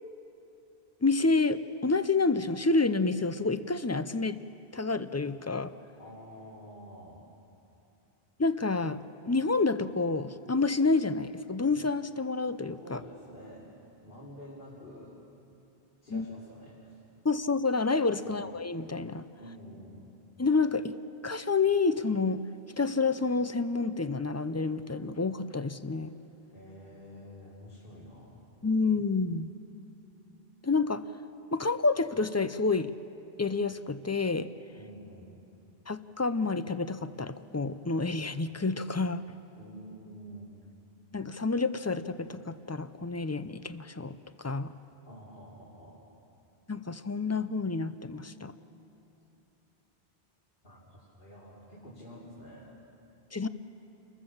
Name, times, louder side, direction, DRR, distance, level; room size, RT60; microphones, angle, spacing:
voice 1, 1.0-4.4 4.7-5.7 8.4-13.0 16.1-16.2 17.2-19.3 20.4-20.9 21.2-22.4 22.8-26.1 28.6-29.5 30.6-31.1 31.5-32.9 33.4-34.5 35.9-39.4 41.1-44.7 46.7-48.5 53.3-53.5, left 3 dB, 20° left, 13 dB, 0.5 m, -29 dB
voice 2, 6.0-7.3 12.8-13.7 14.0-15.2 16.0-17.0 18.2-18.4 19.4-20.1 26.5-28.4 34.8-35.4 39.6-40.6 45.1-46.0 50.6-52.8, equal, 60° left, -6 dB, 3.4 m, -48 dB
29.5 x 21.5 x 7.3 m, 2.9 s
omnidirectional pair, 1.0 m